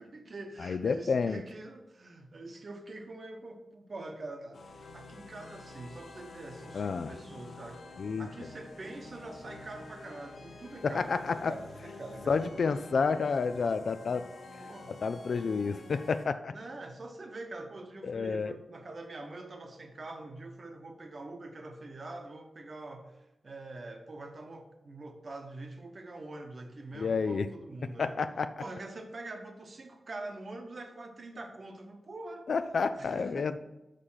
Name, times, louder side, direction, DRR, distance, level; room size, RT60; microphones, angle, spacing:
voice 1, 0.0-12.6 13.1-13.2 14.6-14.9 16.5-28.1 28.6-32.5 33.0-33.5, right 2 dB, 45° right, 5 dB, 0.9 m, -44 dB
voice 2, 0.6-1.4 6.7-7.1 8.0-8.3 10.8-11.6 12.3-14.3 14.9-16.5 18.0-18.5 26.9-27.5 28.0-28.6 32.5-33.6, left 5 dB, 65° left, 11 dB, 0.4 m, -30 dB
sound 1, 4.5-16.2, left 3 dB, 85° left, 1.2 m, -49 dB
6.5 x 5.1 x 5.6 m, 0.97 s
wide cardioid pair, 125°, 0 cm